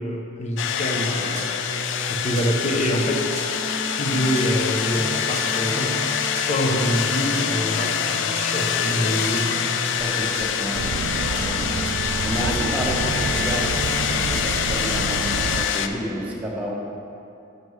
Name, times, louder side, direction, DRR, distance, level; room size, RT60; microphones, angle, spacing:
voice 1, 0.0-1.6 2.0-3.4 4.0-6.0 6.5-9.5, equal, 35° left, 1 dB, 0.7 m, -25 dB
sound 1, 0.6-15.9, left 8 dB, 65° left, 0.3 m, -25 dB
sound 2, 0.9-14.4, right 1 dB, 35° right, 0.9 m, -34 dB
voice 2, 10.0-11.7 12.2-16.8, equal, 10° right, -5 dB, 1.0 m, -31 dB
sound 3, 10.7-15.6, right 4 dB, 65° right, 0.3 m, -29 dB
7.2 x 6.4 x 3.1 m, 2.7 s
head